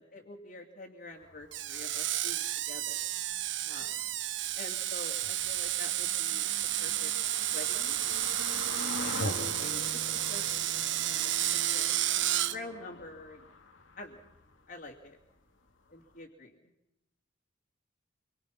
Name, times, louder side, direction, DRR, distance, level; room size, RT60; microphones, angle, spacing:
voice 1, 0.0-3.1 3.6-4.1 4.5-6.5 6.8-7.1 7.5-8.0 9.0-10.0 10.3-10.5 11.0-11.4 11.7-12.0 12.5-13.5 14.0-14.2 14.7-15.2 15.9-16.6, left 2 dB, 50° left, -1 dB, 2.6 m, -47 dB
sound 1, 1.1-15.3 15.6-15.7 16.1-16.2, left 2 dB, 85° left, 2.4 m, -43 dB
Screech, 1.5-12.6, right 13 dB, 70° right, 0.9 m, -31 dB
26.0 x 23.5 x 5.9 m, 0.87 s
head